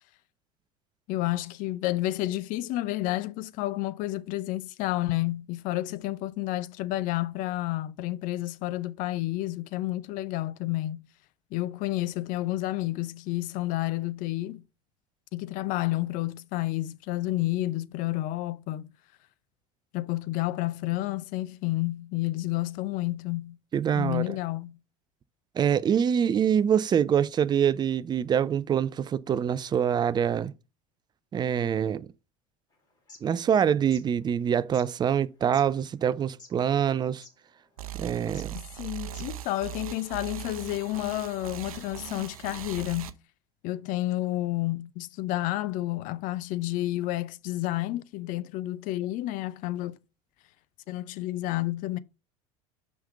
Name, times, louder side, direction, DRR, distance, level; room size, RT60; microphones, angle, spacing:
voice 1, 1.1-11.0 11.5-14.6 15.3-18.9 19.9-23.6 23.9-24.8 38.5-43.1 43.6-50.0 50.9-52.0, left 17 dB, 45° left, 0.6 m, -30 dB
voice 2, 23.7-24.2 25.6-30.5 31.3-32.1 33.2-37.2 38.0-38.5, right 8 dB, 25° right, 0.5 m, -25 dB
sound 1, 32.9-33.2 33.7-34.0 34.7-34.8 35.5-35.7 36.3-36.6 36.9-37.0 37.2-37.3 38.3-38.5 39.0-39.4, left 3 dB, 20° left, 4.0 m, -48 dB
sound 2, 37.8-43.1, right 11 dB, 70° right, 0.7 m, -40 dB
5.6 x 5.3 x 6.7 m
figure-of-eight pair, 75°, 19 cm